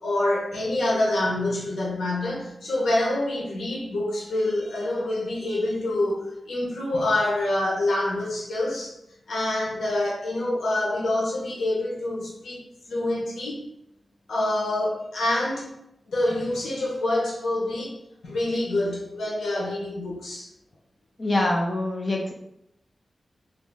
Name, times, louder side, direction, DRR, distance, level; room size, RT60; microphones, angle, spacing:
voice 1, 0.0-9.0 9.3-12.6 12.9-13.6 14.3-15.7 16.1-18.0 18.2-20.5, left 1 dB, 90° left, -3 dB, 1.0 m, -26 dB
voice 2, 21.2-22.3, left 1 dB, 40° left, 0 dB, 0.5 m, -24 dB
3.0 x 2.7 x 3.4 m, 0.81 s
cardioid pair, 55°, 0 cm